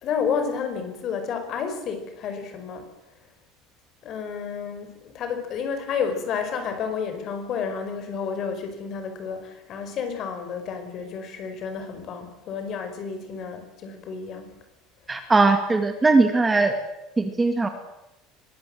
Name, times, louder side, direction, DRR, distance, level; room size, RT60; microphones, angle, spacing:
voice 1, 0.0-2.9 4.0-14.5, left 6 dB, 40° left, 7 dB, 4.8 m, -31 dB
voice 2, 15.1-16.7 17.2-17.7, right 3 dB, 10° right, 7 dB, 1.9 m, -20 dB
23.0 x 20.0 x 7.7 m, 0.93 s
cardioid pair, 160°, 0 cm